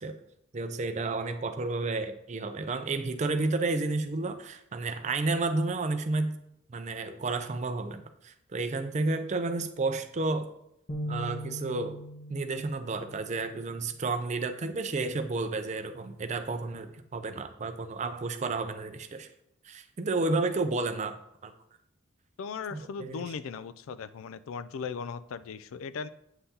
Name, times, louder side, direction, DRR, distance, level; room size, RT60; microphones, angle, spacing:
voice 1, 0.5-6.4 6.7-10.5 11.1-12.0 12.3-19.3 19.6-21.5 22.7-23.3, right 3 dB, 35° right, 9 dB, 0.4 m, -31 dB
sound 1, 10.9-14.4, equal, 45° left, 1.1 m, -41 dB
voice 2, 22.4-26.1, left 5 dB, 80° left, 15 dB, 0.3 m, -38 dB
8.0 x 5.6 x 2.8 m, 0.80 s
head